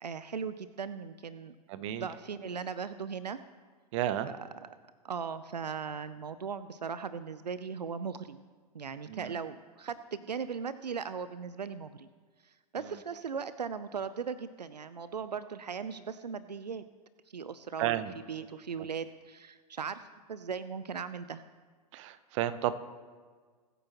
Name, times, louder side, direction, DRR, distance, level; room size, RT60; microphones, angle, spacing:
voice 1, 0.0-1.6 1.9-3.4 4.2-4.8 5.0-8.4 8.7-12.1 12.4-16.8 17.3-18.0 18.3-20.0 20.3-21.4, right 6 dB, 85° right, 13 dB, 0.5 m, -38 dB
voice 2, 1.7-2.1 3.9-4.3 9.1-9.3 17.8-18.1 21.9-22.8, right 12 dB, 50° right, 13 dB, 0.9 m, -32 dB
22.0 x 9.1 x 3.0 m, 1.5 s
figure-of-eight pair, 100°, 21 cm